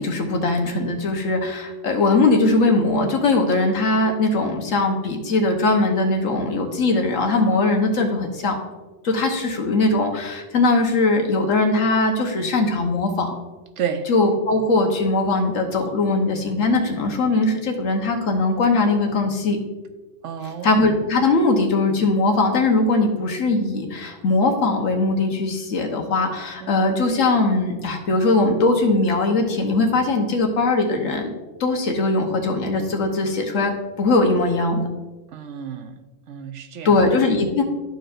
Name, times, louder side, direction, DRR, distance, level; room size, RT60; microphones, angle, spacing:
voice 1, 0.0-8.6 9.0-13.3 14.1-19.6 20.6-31.3 31.6-34.8 36.8-37.6, left 3 dB, 85° left, 3 dB, 1.4 m, -20 dB
voice 2, 13.8-14.1 20.2-20.8 26.6-26.8 35.3-35.9 36.3-36.9, right 7 dB, 75° right, 7 dB, 1.0 m, -30 dB
12.5 x 4.6 x 2.5 m, 1.2 s
omnidirectional pair, 1.3 m